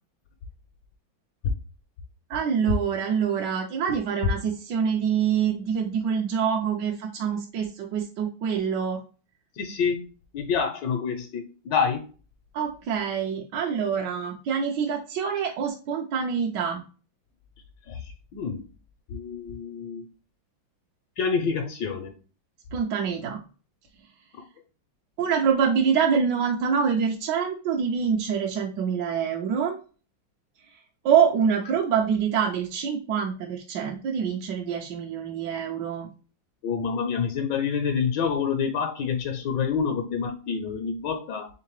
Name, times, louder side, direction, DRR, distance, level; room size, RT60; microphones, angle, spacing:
voice 1, 2.3-9.0 12.5-16.8 22.7-23.4 25.2-29.8 31.0-36.1, right 7 dB, 70° right, 0 dB, 1.2 m, -25 dB
voice 2, 9.6-10.1 10.3-12.0 17.9-18.7 19.1-20.0 21.2-22.1 36.6-41.5, left 6 dB, 70° left, 4 dB, 1.2 m, -27 dB
3.7 x 3.6 x 3.0 m, 0.37 s
omnidirectional pair, 2.1 m